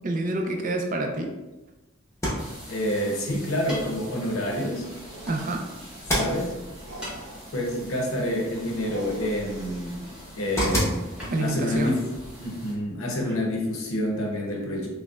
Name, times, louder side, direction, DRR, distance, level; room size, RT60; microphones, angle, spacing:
voice 1, 0.0-1.3 5.3-5.6 11.3-11.9, right 2 dB, 40° right, 2 dB, 0.4 m, -27 dB
sound 1, 2.1-13.7, equal, 15° left, 0.7 m, -35 dB
sound 2, 2.4-12.7, equal, 5° right, 1.2 m, -43 dB
voice 2, 2.7-4.9 6.1-6.6 7.5-10.0 10.4-11.1 11.4-12.1 12.4-14.9, left 1 dB, 75° left, 0 dB, 0.7 m, -28 dB
sound 3, 3.4-11.3, right 1 dB, 70° right, 0.8 m, -46 dB
5.1 x 2.1 x 2.3 m, 1.1 s
head